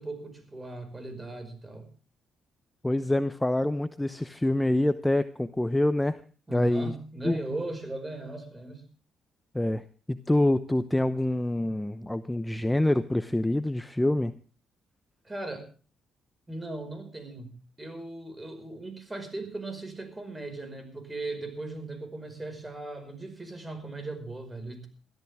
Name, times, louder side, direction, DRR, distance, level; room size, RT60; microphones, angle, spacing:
voice 1, 0.0-1.9 6.5-8.8 15.2-15.7 16.5-24.9, right 2 dB, 15° right, 8 dB, 5.4 m, -38 dB
voice 2, 2.8-6.2 6.5-6.9 7.2-7.4 9.5-14.3, left 1 dB, 10° left, 12 dB, 0.8 m, -26 dB
22.0 x 13.5 x 3.5 m, 0.37 s
cardioid pair, 90°, 0 cm